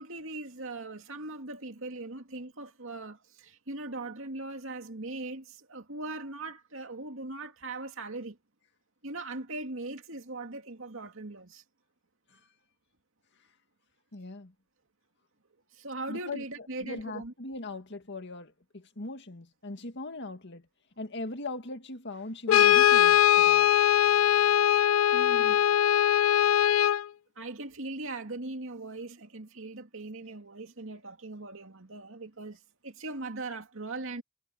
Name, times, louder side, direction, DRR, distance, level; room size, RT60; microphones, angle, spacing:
voice 1, 0.0-8.4 9.0-11.6 15.7-17.3 25.1-25.7 27.4-34.2, right 2 dB, 65° right, 2.6 m, -40 dB
voice 2, 14.1-14.5 16.1-20.7 21.0-23.7, left 2 dB, 55° left, 2.1 m, -40 dB
Brass instrument, 22.5-27.1, left 11 dB, 70° left, 0.3 m, -21 dB
head